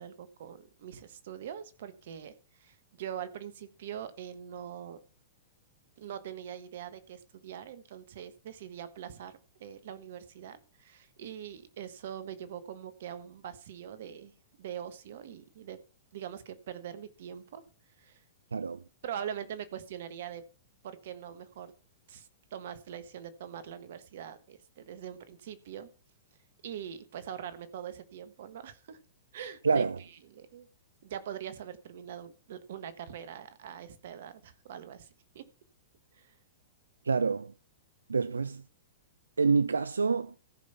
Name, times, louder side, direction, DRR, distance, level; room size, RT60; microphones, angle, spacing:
voice 1, 0.0-2.3 2.6-5.0 6.0-14.3 14.6-15.8 16.1-17.6 18.0-18.2 19.0-20.4 20.8-21.7 22.1-25.9 26.6-29.0 29.3-29.8 30.3-30.7 31.0-35.5 36.1-36.3, right 9 dB, 65° right, 1.4 m, -43 dB
voice 2, 29.6-30.0 37.0-37.5 38.1-38.6 39.4-40.3, right 5 dB, 90° right, 0.4 m, -27 dB
14.5 x 5.3 x 5.8 m
hypercardioid pair, 115°, 0 cm